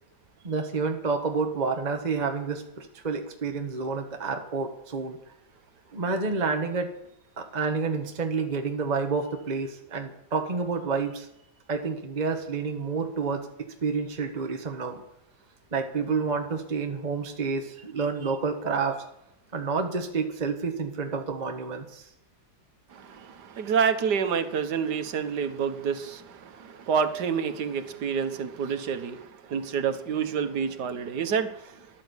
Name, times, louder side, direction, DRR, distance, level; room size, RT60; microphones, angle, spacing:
voice 1, 0.4-5.2 5.9-6.9 7.4-11.3 11.7-13.5 13.8-15.0 15.7-19.0 19.5-22.0, right 4 dB, 25° right, 4 dB, 1.3 m, -29 dB
voice 2, 22.9-31.8, right 6 dB, 80° right, 10 dB, 1.8 m, -28 dB
13.5 x 11.0 x 8.2 m, 0.79 s
omnidirectional pair, 1.8 m